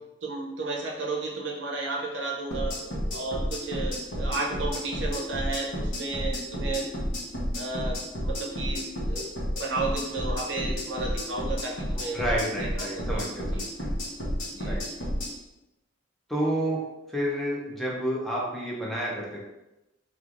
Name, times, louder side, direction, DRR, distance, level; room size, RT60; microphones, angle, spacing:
voice 1, 0.2-2.8 3.1-6.9 7.5-9.3 9.5-12.2 12.6-13.7 14.5-14.8, right 3 dB, 65° right, -1 dB, 0.6 m, -33 dB
sound 1, 2.5-15.3, equal, 85° left, 0.9 m, -31 dB
voice 2, 12.1-13.9 14.6-14.8 16.3-16.8 17.1-19.4, equal, ahead, -5 dB, 0.5 m, -30 dB
3.0 x 2.4 x 2.4 m, 0.94 s
head